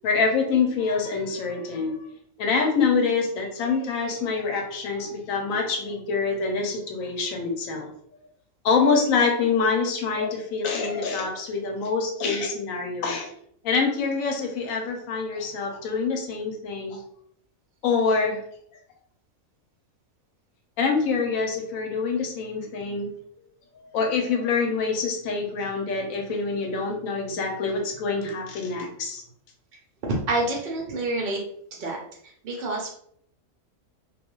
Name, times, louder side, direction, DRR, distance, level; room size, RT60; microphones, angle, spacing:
voice 1, 0.0-2.0 2.4-7.9 8.6-13.3 13.6-17.0 17.8-18.4 20.8-23.1 23.8-29.2, left 4 dB, 75° left, 3 dB, 1.0 m, -25 dB
voice 2, 30.1-31.4 31.8-32.0 32.4-32.9, right 2 dB, 65° right, -1 dB, 0.5 m, -27 dB
2.3 x 2.3 x 2.9 m, 0.67 s
omnidirectional pair, 1.5 m